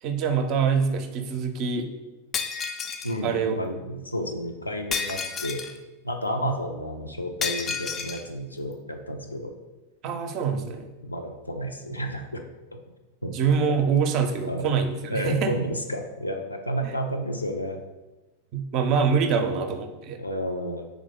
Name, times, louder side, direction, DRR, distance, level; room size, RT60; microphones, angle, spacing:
voice 1, 0.0-1.9 3.2-3.5 6.3-6.5 10.0-10.9 13.3-15.6 16.8-17.0 18.5-20.2, right 6 dB, 40° right, 7 dB, 0.5 m, -25 dB
Shatter, 2.3-3.2 4.9-5.8 7.4-8.2, left 6 dB, 25° left, 0.4 m, -30 dB
voice 2, 3.0-5.6 6.0-9.5 11.0-12.4 13.2-13.3 14.5-14.6 15.1-17.8 19.4-19.6 20.2-20.8, equal, 85° left, 4 dB, 0.5 m, -31 dB
3.6 x 3.5 x 3.6 m, 1.1 s
figure-of-eight pair, 90°, 0 cm